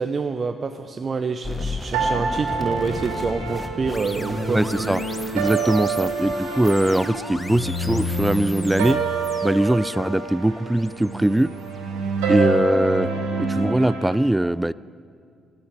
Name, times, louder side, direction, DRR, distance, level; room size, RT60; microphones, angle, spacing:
voice 1, 0.0-4.6 5.6-5.7, right 4 dB, 40° right, 7 dB, 0.7 m, -27 dB
sound 1, 1.4-12.5, left 2 dB, 20° left, 0.9 m, -36 dB
sound 2, 1.9-14.2, right 3 dB, 85° right, 2.6 m, -27 dB
voice 2, 4.5-5.0 5.3-9.0 9.4-11.5 12.3-13.1 13.4-14.7, right 1 dB, 10° right, 19 dB, 0.3 m, -21 dB
12.5 x 9.9 x 9.6 m, 2.3 s
hypercardioid pair, 50°, 0 cm